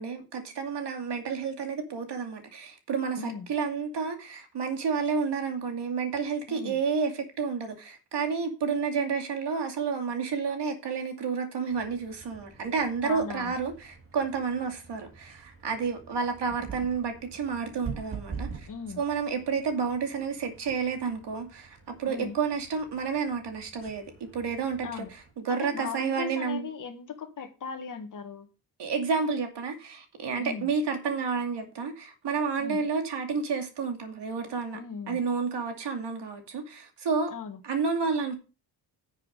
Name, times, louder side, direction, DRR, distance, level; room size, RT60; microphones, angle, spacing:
voice 1, 0.0-18.7 19.0-25.0 25.4-26.7 28.8-34.8 35.1-37.3 37.6-38.4, right 5 dB, 65° right, 2.5 m, -30 dB
voice 2, 3.2-3.5 6.5-6.8 13.0-13.5 18.7-19.0 22.1-22.4 24.8-25.1 25.5-28.5 30.4-30.7 32.6-32.9 34.7-35.2 37.3-37.6, left 6 dB, 45° left, 1.6 m, -38 dB
sound 1, 11.7-25.3, right 5 dB, 30° right, 2.7 m, -46 dB
10.5 x 6.9 x 5.2 m
wide cardioid pair, 165°, 44 cm